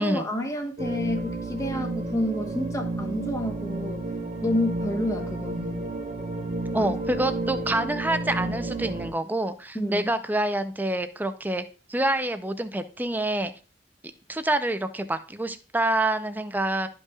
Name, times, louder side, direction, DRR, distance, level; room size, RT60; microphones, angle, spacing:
voice 1, 0.0-4.0 4.4-5.8 6.7-6.9 9.7-10.1, left 1 dB, 20° left, 1.1 m, -29 dB
sound 1, 0.8-9.1, right 2 dB, 40° right, 1.3 m, -31 dB
voice 2, 6.7-11.6 11.9-13.5 14.3-16.9, right 1 dB, 10° right, 0.5 m, -27 dB
12.0 x 5.5 x 2.4 m
head